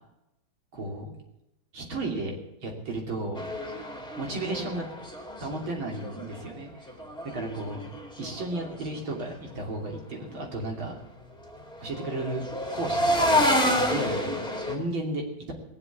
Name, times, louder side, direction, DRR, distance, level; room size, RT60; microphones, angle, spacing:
voice 1, 0.7-1.1 1.7-2.4 2.6-3.4 4.2-4.9 5.4-6.9 7.3-7.8 8.2-11.0 11.8-12.4 12.7-15.5, right 2 dB, 70° right, 1 dB, 3.7 m, -34 dB
sound 1, 3.4-6.5 6.9-8.8 9.1-9.4 9.7-10.0 11.5-14.7, left 1 dB, ahead, 2.2 m, -29 dB
19.5 x 7.4 x 8.3 m, 0.90 s
omnidirectional pair, 2.2 m